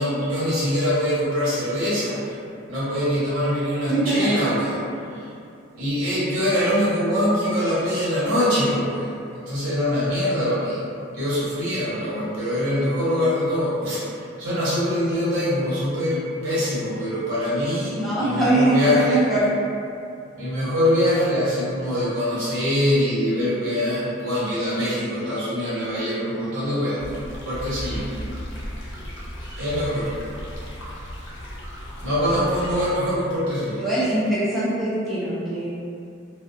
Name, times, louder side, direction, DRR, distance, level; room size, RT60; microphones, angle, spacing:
voice 1, 0.0-2.4 2.7-4.8 5.7-10.8 11.1-14.0 14.4-19.2 20.4-27.0 27.4-28.1 28.9-29.0 29.6-30.1 32.0-33.8, left 1 dB, 80° right, -10 dB, 1.0 m, -23 dB
voice 2, 3.9-4.3 17.9-19.4 33.8-35.7, right 2 dB, ahead, -11 dB, 0.4 m, -22 dB
sound 1, 27.0-32.9, equal, 65° left, 0.5 m, -35 dB
2.6 x 2.1 x 2.5 m, 2.5 s
head